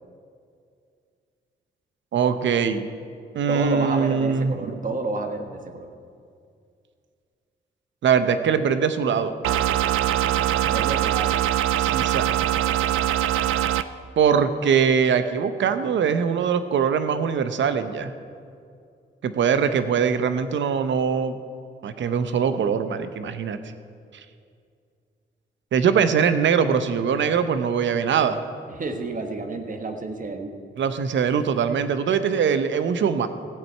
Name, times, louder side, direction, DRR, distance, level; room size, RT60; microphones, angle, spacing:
voice 1, 2.1-2.9 3.3-4.5 8.0-9.3 11.8-12.3 14.2-18.1 19.2-21.4 21.8-23.6 25.7-28.4 30.8-33.3, right 7 dB, 65° right, 10 dB, 0.8 m, -22 dB
voice 2, 3.5-5.9 10.6-11.3 28.7-30.5, right 3 dB, 40° right, 5 dB, 1.4 m, -30 dB
sound 1, 9.4-13.8, right 11 dB, 90° right, 0.4 m, -22 dB
16.0 x 7.9 x 4.5 m, 2.3 s
cardioid pair, 60°, 20 cm